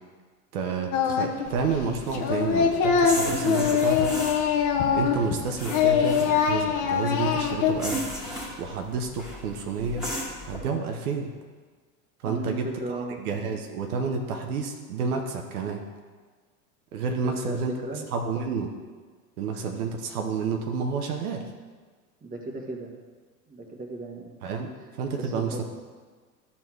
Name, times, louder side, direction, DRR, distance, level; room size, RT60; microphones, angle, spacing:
voice 1, 0.5-4.1 4.9-8.1 8.6-10.1 10.4-11.3 12.2-12.6 13.2-15.8 16.9-17.7 18.1-18.7 19.4-21.4 24.4-25.6, right 5 dB, 65° right, 3 dB, 1.1 m, -30 dB
Singing, 0.9-1.5 1.7-5.4 5.7-7.7, left 7 dB, 40° left, 1.1 m, -23 dB
sound 1, 1.4-10.6, equal, ahead, 2.0 m, -37 dB
voice 2, 12.2-13.2 17.2-18.1 22.2-22.9 23.5-24.3 25.1-25.6, right 2 dB, 15° right, -1 dB, 1.5 m, -35 dB
12.0 x 4.2 x 4.6 m, 1.5 s
hypercardioid pair, 95°, 47 cm